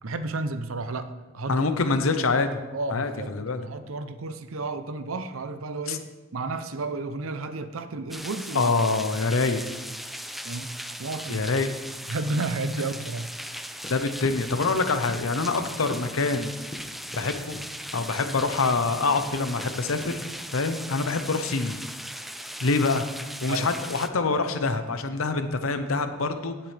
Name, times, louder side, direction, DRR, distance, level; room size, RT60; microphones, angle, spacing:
voice 1, 0.0-1.7 2.7-3.3 3.6-6.1 6.3-8.7 10.4-10.7 11.0-11.5 12.1-13.3 17.1-17.2 23.5-23.7, right 3 dB, 85° right, 11 dB, 0.7 m, -32 dB
voice 2, 1.5-2.5 2.9-3.7 5.9-6.0 8.5-9.6 11.3-11.7 13.9-16.5 17.2-17.6 17.9-20.2 20.5-21.8 22.6-23.1 23.4-26.6, left 3 dB, 85° left, 9 dB, 0.8 m, -25 dB
sound 1, 8.1-24.1, equal, ahead, 0.4 m, -38 dB
sound 2, 13.7-20.2, left 1 dB, 20° left, 1.0 m, -43 dB
16.5 x 7.4 x 3.4 m, 1.2 s
head